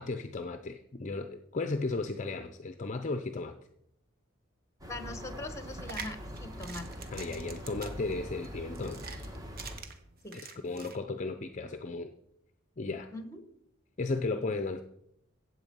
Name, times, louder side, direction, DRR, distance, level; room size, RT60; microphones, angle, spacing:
voice 1, 0.0-3.6 7.1-9.1 10.6-12.1 12.8-13.1 14.0-14.8, left 3 dB, 35° left, 8 dB, 0.6 m, -35 dB
sound 1, 4.8-9.8, equal, 15° right, 1.6 m, -43 dB
voice 2, 4.9-7.1 10.2-10.4 13.1-13.4, left 2 dB, 15° left, 9 dB, 1.2 m, -42 dB
sound 2, 5.7-11.0, right 5 dB, 45° right, 1.3 m, -46 dB
15.5 x 8.0 x 5.4 m, 0.80 s
head